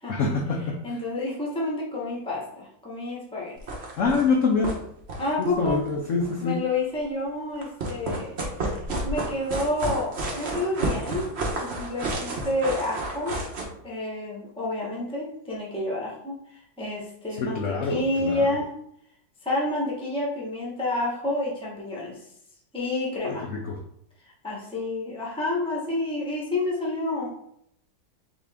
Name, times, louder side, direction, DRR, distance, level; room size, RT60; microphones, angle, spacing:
voice 1, 0.1-0.8 4.0-4.8 5.4-6.6 17.4-18.5 23.2-23.8, left 4 dB, 65° left, 0 dB, 0.8 m, -25 dB
voice 2, 0.8-3.6 5.2-5.8 6.4-8.4 9.0-11.3 11.6-13.4 13.8-18.7 19.4-22.2 22.7-23.5 24.4-27.5, left 2 dB, 5° left, -4 dB, 0.8 m, -29 dB
sound 1, 3.6-4.3 4.6-4.8 5.0-6.4 7.6-13.6, right 2 dB, 45° right, 0.9 m, -30 dB
4.0 x 3.5 x 3.4 m, 0.72 s
omnidirectional pair, 2.0 m